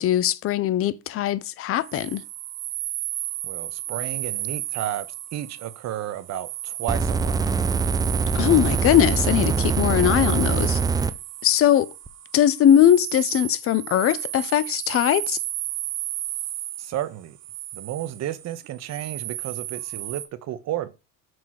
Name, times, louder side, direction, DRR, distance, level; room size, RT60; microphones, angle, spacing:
voice 1, 0.0-2.2 8.3-10.8 11.4-11.9 12.3-15.4, left 11 dB, 40° left, 0.6 m, -20 dB
sound 1, 1.8-20.3, right 13 dB, 80° right, 1.2 m, -33 dB
voice 2, 3.4-5.0 5.3-7.4 16.8-17.4 17.7-20.9, right 12 dB, 45° right, 0.9 m, -32 dB
sound 2, 6.9-11.1 12.1-12.2, right 4 dB, 10° right, 0.4 m, -23 dB
6.1 x 3.5 x 4.6 m
supercardioid pair, 95°, 36 cm